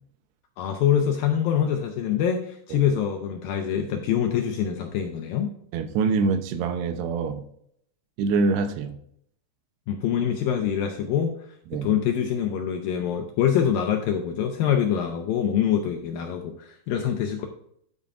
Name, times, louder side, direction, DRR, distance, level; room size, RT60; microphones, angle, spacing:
voice 1, 0.6-5.5 9.9-11.3 11.8-17.5, left 9 dB, 80° left, 2.1 m, -25 dB
voice 2, 5.7-7.4 8.2-9.0 11.7-11.9, right 4 dB, 80° right, 2.8 m, -25 dB
9.6 x 8.6 x 2.5 m
omnidirectional pair, 4.8 m